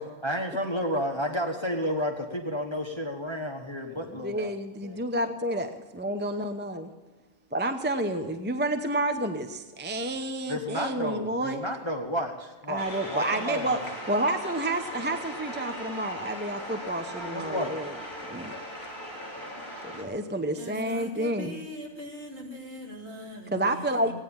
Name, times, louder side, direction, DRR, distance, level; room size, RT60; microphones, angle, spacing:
voice 1, 0.0-4.5 4.8-5.1 10.5-13.9 17.1-17.8, equal, 20° left, 3 dB, 1.2 m, -32 dB
voice 2, 3.9-6.9 7.5-11.6 12.7-13.8 14.1-17.9 18.3-18.5 19.8-21.6 23.5-24.1, right 1 dB, 10° right, 7 dB, 0.5 m, -30 dB
sound 1, 12.8-20.0, equal, 45° left, 3.7 m, -38 dB
voice 3, 20.5-24.1, equal, 45° right, -3 dB, 3.7 m, -41 dB
16.5 x 10.0 x 7.1 m, 1.3 s
omnidirectional pair, 1.5 m